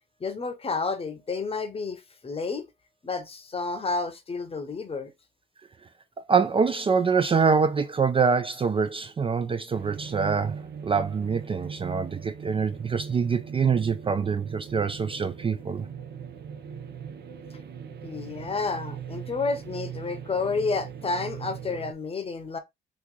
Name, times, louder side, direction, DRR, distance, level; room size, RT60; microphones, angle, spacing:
voice 1, 0.2-2.7 3.0-5.1 18.0-22.6, left 4 dB, 30° left, 0.8 m, -30 dB
voice 2, 6.3-15.9, right 5 dB, 25° right, 0.4 m, -25 dB
sound 1, 9.7-21.9, right 7 dB, 60° right, 0.7 m, -40 dB
3.1 x 2.5 x 3.6 m
cardioid pair, 90°, 20 cm